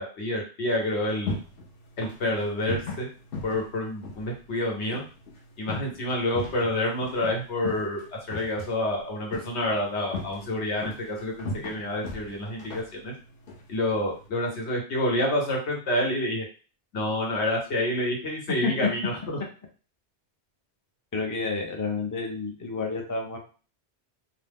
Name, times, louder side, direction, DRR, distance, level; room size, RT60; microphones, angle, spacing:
voice 1, 0.0-1.4 2.0-3.1 3.4-5.0 5.6-13.1 13.7-16.5 16.9-19.4, left 1 dB, 85° left, -1 dB, 1.2 m, -28 dB
sound 1, 0.8-14.3, left 3 dB, 60° left, 0.8 m, -39 dB
voice 2, 21.1-23.4, left 4 dB, 30° left, 2 dB, 0.3 m, -30 dB
2.8 x 2.1 x 3.4 m, 0.37 s
omnidirectional pair, 1.1 m